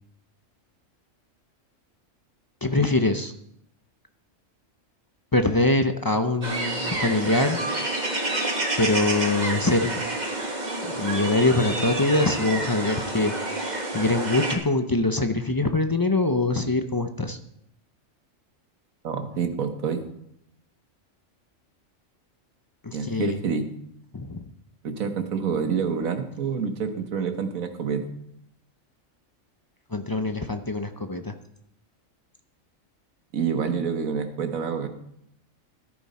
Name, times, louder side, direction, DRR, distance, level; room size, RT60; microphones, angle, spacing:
voice 1, 2.6-3.3 5.3-7.6 8.8-10.1 10.8-17.4 22.8-23.4 24.1-24.5 29.9-31.3, left 2 dB, 30° left, 8 dB, 0.4 m, -24 dB
sound 1, 6.4-14.5, right 2 dB, 35° right, 1.8 m, -29 dB
voice 2, 19.0-20.0 22.9-23.7 24.8-28.1 33.3-34.9, right 6 dB, 85° right, 7 dB, 1.6 m, -27 dB
13.5 x 10.5 x 4.2 m, 0.73 s
omnidirectional pair, 1.4 m